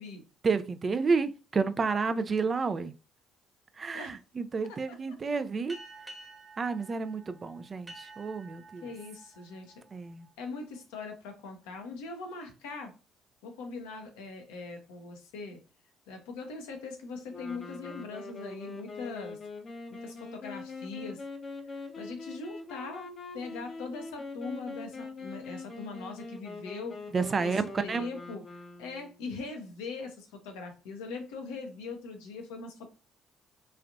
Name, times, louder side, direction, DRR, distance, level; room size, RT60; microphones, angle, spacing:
voice 1, 0.4-2.9 3.8-5.8 6.6-8.9 9.9-10.3 27.1-28.1, right 4 dB, 40° right, 0.3 m, -30 dB
sound 1, 5.7-10.8, right 2 dB, 15° right, 1.0 m, -51 dB
voice 2, 8.8-9.7 10.4-12.9 13.4-15.6 16.1-19.4 19.9-21.2 21.7-23.1 23.3-27.0 27.4-27.6 27.8-32.9, left 4 dB, 85° left, 0.7 m, -41 dB
sound 2, 17.3-29.2, left 3 dB, 45° left, 0.6 m, -43 dB
3.1 x 2.5 x 2.4 m
hypercardioid pair, 60°, 0 cm